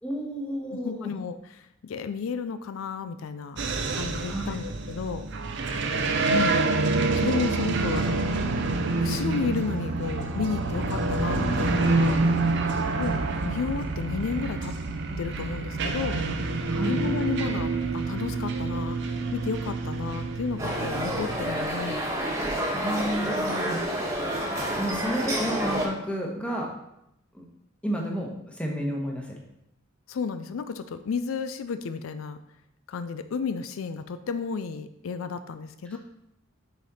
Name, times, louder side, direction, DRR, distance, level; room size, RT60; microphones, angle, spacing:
voice 1, 0.0-1.1 4.3-4.6 16.7-17.0 22.7-24.1 24.8-26.7 27.3-27.4 27.8-29.3 35.9-36.0, equal, 5° left, -1 dB, 1.2 m, -31 dB
voice 2, 0.8-3.6 3.9-5.3 6.3-6.6 7.2-8.2 9.0-12.2 13.0-13.2 13.4-14.7 15.2-16.2 16.8-19.0 19.3-22.0 30.1-32.4 32.9-36.0, left 5 dB, 75° left, 11 dB, 0.4 m, -32 dB
sound 1, 3.6-21.4, right 3 dB, 60° right, 0.7 m, -27 dB
sound 2, 20.6-25.9, equal, 15° right, 1.3 m, -29 dB
6.3 x 5.1 x 4.2 m, 0.81 s
head